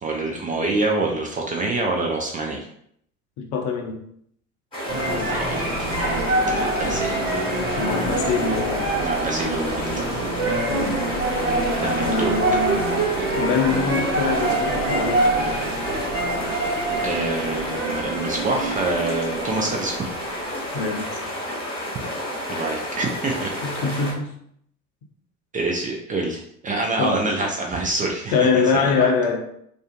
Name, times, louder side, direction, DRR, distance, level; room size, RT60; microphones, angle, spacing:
voice 1, 0.0-2.6 5.1-5.7 6.5-7.2 9.0-10.2 11.8-12.4 17.0-20.0 22.5-23.5 25.5-28.3 28.7-28.9, right 2 dB, 20° right, 0 dB, 0.3 m, -26 dB
voice 2, 3.4-4.0 7.8-8.9 10.7-11.0 12.0-12.8 13.4-15.3 20.7-21.4 23.6-24.3 27.0-27.2 28.3-29.4, left 5 dB, 60° left, 3 dB, 0.7 m, -24 dB
sound 1, 4.7-24.1, equal, 10° left, 1.4 m, -31 dB
sound 2, 4.9-21.0, right 2 dB, 40° right, 1.2 m, -25 dB
2.4 x 2.3 x 2.5 m, 0.68 s
hypercardioid pair, 65°, 40 cm